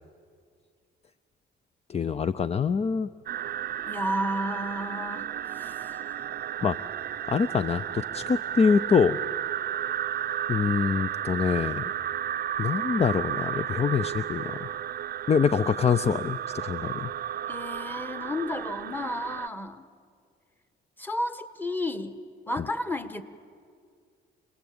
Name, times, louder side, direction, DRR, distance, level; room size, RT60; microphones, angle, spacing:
voice 1, 1.9-3.1 6.6-6.8 7.3-9.2 10.5-11.8 12.6-14.7 15.3-17.1, left 6 dB, 30° left, 14 dB, 0.5 m, -25 dB
sound 1, 3.3-19.5, right 10 dB, 50° right, 0.5 m, -33 dB
voice 2, 3.8-5.3 5.5-5.9 17.5-19.8 21.0-22.2 22.5-23.2, left 1 dB, 10° left, 11 dB, 1.5 m, -32 dB
27.0 x 19.5 x 8.7 m, 2.2 s
cardioid pair, 90°, 20 cm